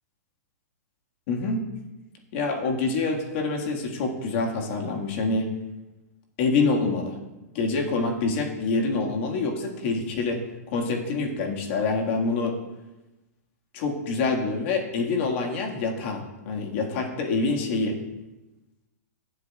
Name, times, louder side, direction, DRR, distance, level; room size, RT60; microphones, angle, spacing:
voice 1, 1.3-1.6 2.3-5.5 6.4-7.2 7.5-10.4 10.7-12.6 13.7-18.0, left 3 dB, 45° left, 1 dB, 1.8 m, -26 dB
15.5 x 7.9 x 2.4 m, 1.0 s
hypercardioid pair, 150°, 9 cm